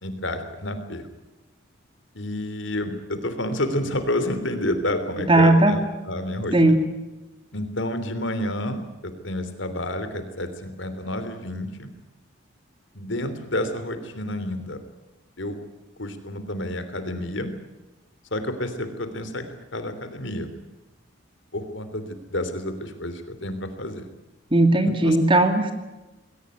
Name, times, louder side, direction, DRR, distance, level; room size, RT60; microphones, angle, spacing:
voice 1, 0.0-1.0 2.1-5.8 6.1-6.8 7.5-11.9 12.9-14.8 15.4-15.6 16.0-17.5 18.3-20.5 21.5-24.1 25.0-25.2, left 1 dB, 60° left, 9 dB, 3.2 m, -29 dB
voice 2, 5.3-5.8 6.5-6.8 24.5-25.7, right 2 dB, 25° right, 7 dB, 2.4 m, -17 dB
20.5 x 18.5 x 9.7 m, 1.1 s
head